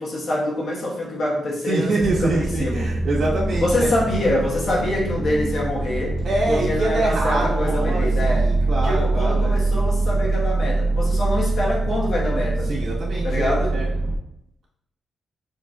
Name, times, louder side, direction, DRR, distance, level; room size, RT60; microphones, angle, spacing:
voice 1, 0.0-1.9 2.2-2.9 3.6-6.2 6.5-8.5 8.8-12.7 13.2-13.8, left 1 dB, 60° left, -4 dB, 1.4 m, -25 dB
voice 2, 1.7-3.9 6.2-9.5 12.7-13.9, right 2 dB, 70° right, -4 dB, 1.6 m, -25 dB
sound 1, 2.0-14.2, right 2 dB, 25° left, 0.7 m, -23 dB
6.5 x 3.0 x 2.5 m, 0.77 s
wide cardioid pair, 130°, 0 cm